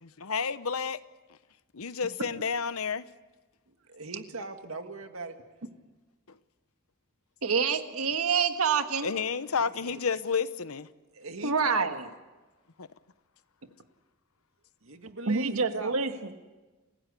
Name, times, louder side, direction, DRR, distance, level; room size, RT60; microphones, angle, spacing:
voice 1, 0.0-1.0 1.7-3.0 9.0-10.9 12.8-12.9, left 5 dB, 80° left, 14 dB, 0.9 m, -30 dB
voice 2, 3.7-5.7 9.6-10.0 11.1-11.9 14.8-16.0, right 3 dB, 70° right, 6 dB, 2.1 m, -40 dB
voice 3, 7.4-9.1 11.4-12.0 15.3-16.3, right 5 dB, 90° right, 7 dB, 1.6 m, -27 dB
28.0 x 16.0 x 8.4 m, 1.2 s
head